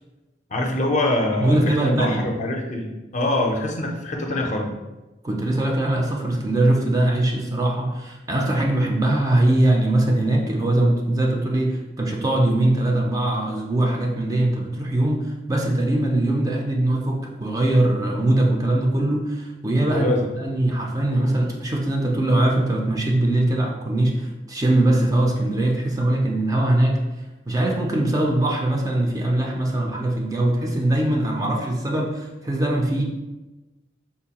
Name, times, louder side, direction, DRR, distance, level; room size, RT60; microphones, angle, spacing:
voice 1, 0.5-4.7 19.9-20.2 20.5-20.7, left 1 dB, 40° left, 2 dB, 0.5 m, -24 dB
voice 2, 1.4-2.2 5.2-20.1 20.4-27.0 27.5-33.0, right 1 dB, 20° right, 0 dB, 0.4 m, -21 dB
3.7 x 2.6 x 2.8 m, 1.1 s
head